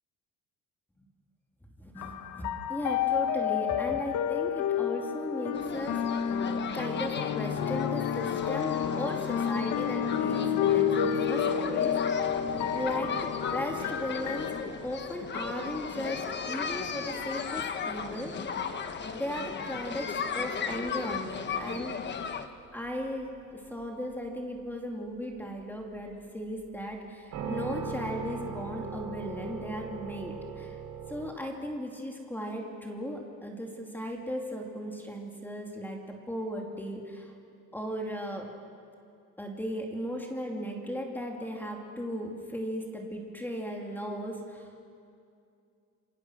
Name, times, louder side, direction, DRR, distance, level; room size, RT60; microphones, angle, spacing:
voice 1, 1.8-6.4 6.7-12.3 12.7-18.6 19.1-22.0 22.7-30.8 31.1-37.3 37.7-38.5 39.4-44.7, equal, 5° left, 1 dB, 2.7 m, -37 dB
sound 1, 2.0-14.6, left 8 dB, 60° left, 1.2 m, -30 dB
sound 2, 5.5-22.5, left 6 dB, 35° left, 1.1 m, -36 dB
sound 3, 12.1-31.3, right 5 dB, 75° right, 4.1 m, -44 dB
28.0 x 24.0 x 6.3 m, 2.4 s
cardioid pair, 155°, 32 cm